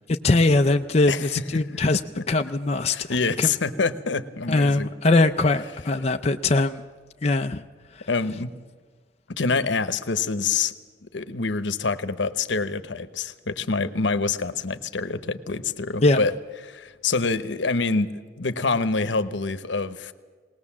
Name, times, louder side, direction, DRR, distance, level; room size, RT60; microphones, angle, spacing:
voice 1, 0.2-2.0 2.3-3.5 4.5-6.8 7.2-7.6 8.0-8.1 16.0-16.2, left 2 dB, 35° left, 5 dB, 0.5 m, -21 dB
voice 2, 1.1-1.6 2.2-2.3 2.9-4.9 8.1-8.5 9.3-10.7 11.0-16.3 16.6-18.1 18.4-20.1, left 4 dB, 70° left, 13 dB, 0.9 m, -26 dB
20.0 x 19.0 x 7.3 m, 1.5 s
head